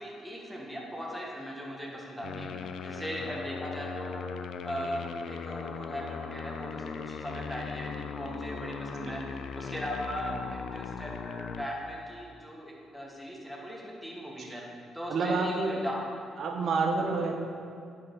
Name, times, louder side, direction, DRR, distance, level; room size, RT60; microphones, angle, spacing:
voice 1, 0.0-4.2 4.6-16.0 16.9-17.2, equal, ahead, -3 dB, 1.4 m, -39 dB
sound 1, 2.2-11.6, left 6 dB, 70° left, 0.4 m, -39 dB
voice 2, 15.1-15.8 16.4-17.3, right 4 dB, 60° right, 2 dB, 1.0 m, -29 dB
10.0 x 4.8 x 3.9 m, 2.3 s
cardioid pair, 90°, 0 cm